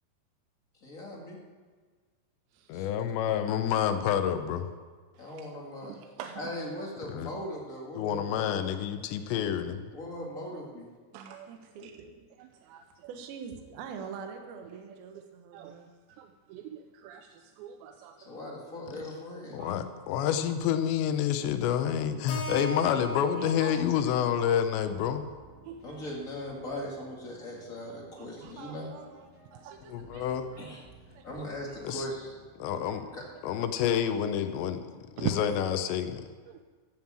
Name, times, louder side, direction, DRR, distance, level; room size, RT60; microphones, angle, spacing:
voice 1, 0.8-1.4 2.7-2.9 3.3-3.4 5.2-6.0 6.3-8.6 9.9-10.9 18.2-19.6 25.8-28.9 30.6-30.8 31.2-32.3 33.1-33.2, left 1 dB, 35° left, -2 dB, 1.4 m, -39 dB
voice 2, 2.7-4.7 7.1-7.3 7.9-9.9 19.5-25.3 29.9-30.5 31.8-32.1 32.6-33.1 33.4-34.9 35.1-36.3, left 9 dB, 85° left, 9 dB, 3.1 m, -28 dB
voice 3, 5.2-5.5 5.8-6.4 11.1-11.5 12.4-13.1 15.5-15.8 16.1-18.2 19.6-19.8 25.7-26.1 28.2-28.8 29.6-29.8 35.2-35.4 36.5-36.6, right 10 dB, 85° right, 6 dB, 2.9 m, -41 dB
voice 4, 11.5-12.1 13.0-15.9 23.1-24.0 27.1-27.2 27.6-27.7 28.4-30.8 31.1-31.9 32.9-33.2 34.0-34.1 35.2-35.4, right 6 dB, 65° right, 4 dB, 2.9 m, -45 dB
Keyboard (musical), 22.3-26.5, left 1 dB, 65° left, 3.5 m, -41 dB
sound 1, 24.8-33.5, right 2 dB, 5° right, 1.3 m, -57 dB
14.5 x 9.2 x 7.4 m, 1.5 s
omnidirectional pair, 5.0 m